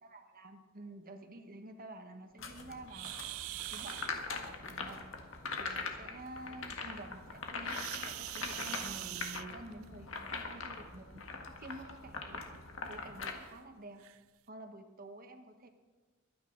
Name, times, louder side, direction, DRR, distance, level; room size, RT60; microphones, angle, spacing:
voice 1, 0.0-3.1 3.7-4.0 4.3-5.0 5.6-11.2 11.6-12.5 12.8-14.0 14.5-15.7, right 2 dB, 45° right, 6 dB, 1.3 m, -49 dB
sound 1, 2.4-13.3, left 4 dB, 70° left, 1.7 m, -42 dB
sound 2, 2.9-4.1 7.6-9.9 11.1-11.3 11.9-12.0 12.5-12.6 13.4-13.5 14.0-14.2, right 18 dB, 85° right, 0.3 m, -42 dB
23.5 x 9.4 x 4.0 m, 1.3 s
head